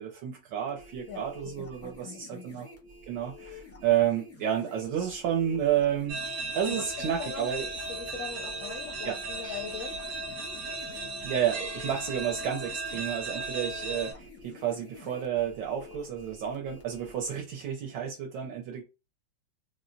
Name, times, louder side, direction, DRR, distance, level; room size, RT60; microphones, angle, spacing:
voice 1, 0.0-2.7 3.1-6.2 6.5-7.6 9.0-9.2 11.2-18.8, right 10 dB, 75° right, 1.2 m, -30 dB
sound 1, 0.7-17.3, left 3 dB, 15° left, 0.5 m, -49 dB
voice 2, 1.6-2.5 6.6-6.8 7.2-7.5 7.9-9.9, left 6 dB, 70° left, 0.9 m, -40 dB
sound 2, 6.1-14.1, right 2 dB, 55° right, 0.8 m, -36 dB
4.2 x 2.1 x 2.5 m
omnidirectional pair, 2.1 m